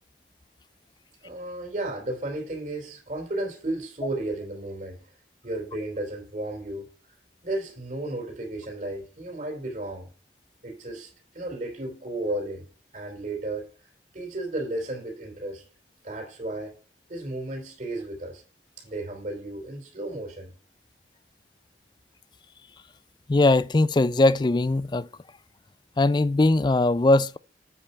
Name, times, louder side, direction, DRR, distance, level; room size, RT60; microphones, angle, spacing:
voice 1, 1.2-5.0 5.4-6.9 7.4-10.1 10.6-12.7 12.9-13.7 14.1-15.6 16.0-16.8 17.1-18.4 18.8-20.5, right 2 dB, 45° right, 3.5 m, -33 dB
voice 2, 23.3-25.1 26.0-27.4, left 2 dB, 25° left, 0.4 m, -20 dB
8.7 x 5.4 x 5.5 m
head